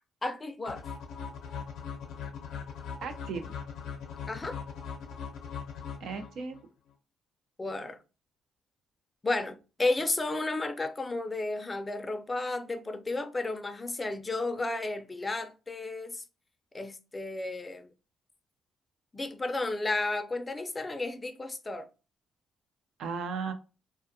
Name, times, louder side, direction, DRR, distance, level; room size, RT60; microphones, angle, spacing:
voice 1, 0.2-0.9 4.3-4.6 7.6-8.0 9.2-16.2 16.7-17.9 19.1-21.9, left 2 dB, 25° left, 0.4 m, -33 dB
sound 1, 0.7-6.6, left 6 dB, 80° left, 0.6 m, -40 dB
voice 2, 3.0-3.5 6.0-6.6 23.0-23.5, right 5 dB, 75° right, 0.5 m, -35 dB
2.4 x 2.2 x 2.6 m
cardioid pair, 90°, 0 cm